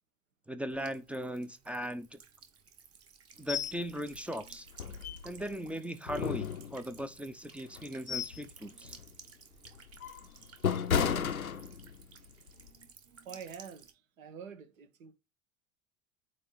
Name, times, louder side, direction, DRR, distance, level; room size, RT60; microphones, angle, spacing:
voice 1, 0.5-2.2 3.4-4.7 5.2-8.9, equal, 5° right, 0.5 m, -38 dB
Buzz / Water tap faucet / Trickle dribble, 0.7-13.9, right 6 dB, 35° right, 1.5 m, -56 dB
sound 1, 3.5-3.8 4.1-4.2 4.7-5.6 6.1-7.1 7.7-8.5 8.8-9.1 9.6-12.1 12.5-12.7, left 7 dB, 90° left, 0.7 m, -33 dB
voice 2, 13.2-15.1, right 7 dB, 70° right, 1.5 m, -47 dB
8.9 x 3.1 x 4.7 m
figure-of-eight pair, 75°, 41 cm